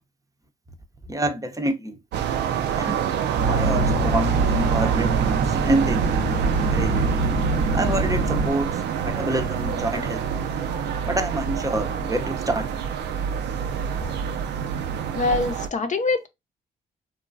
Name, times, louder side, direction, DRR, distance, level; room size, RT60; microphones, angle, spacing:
voice 1, 1.1-2.0 2.8-3.0 3.5-5.2 5.5-6.1 6.7-7.2 7.7-10.3 11.0-12.7, right 1 dB, 20° right, 0.6 m, -27 dB
sound 1, 2.1-15.7, right 8 dB, 75° right, 0.4 m, -26 dB
sound 2, 3.4-8.5, right 1 dB, 90° right, 1.1 m, -24 dB
voice 2, 15.1-16.3, left 3 dB, 45° left, 0.5 m, -24 dB
2.8 x 2.3 x 2.5 m
supercardioid pair, 55°, 18 cm